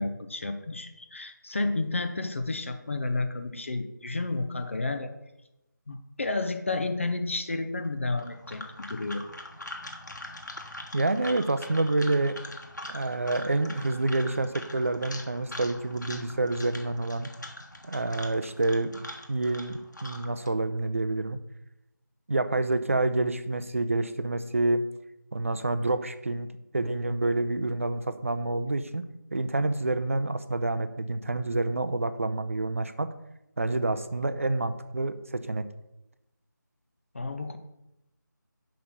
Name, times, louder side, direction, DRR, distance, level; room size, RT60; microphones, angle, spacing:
voice 1, 0.0-5.1 5.9-9.2 37.1-37.6, left 3 dB, 40° left, 7 dB, 0.7 m, -31 dB
sound 1, 8.1-20.5, left 1 dB, 65° left, 1.4 m, -43 dB
voice 2, 10.9-12.4 12.9-17.3 17.8-18.9 19.3-21.4 22.3-24.8 25.3-26.5 26.7-29.0 29.3-33.1 33.6-35.7, right 2 dB, 40° right, 11 dB, 0.6 m, -28 dB
5.7 x 5.4 x 6.8 m, 0.89 s
figure-of-eight pair, 165°, 11 cm